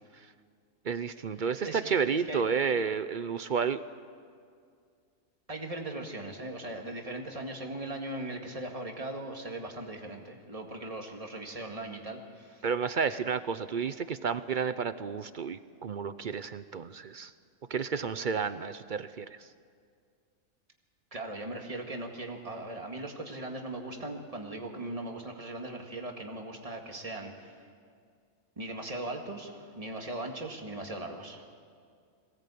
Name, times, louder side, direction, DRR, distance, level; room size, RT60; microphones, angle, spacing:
voice 1, 0.8-3.8 12.6-17.3 17.7-19.5, right 6 dB, 50° right, 13 dB, 0.6 m, -31 dB
voice 2, 2.1-2.4 5.5-12.6 21.1-27.7 28.6-31.5, right 2 dB, 25° right, 2 dB, 2.1 m, -39 dB
22.0 x 17.5 x 8.5 m, 2.2 s
omnidirectional pair, 1.4 m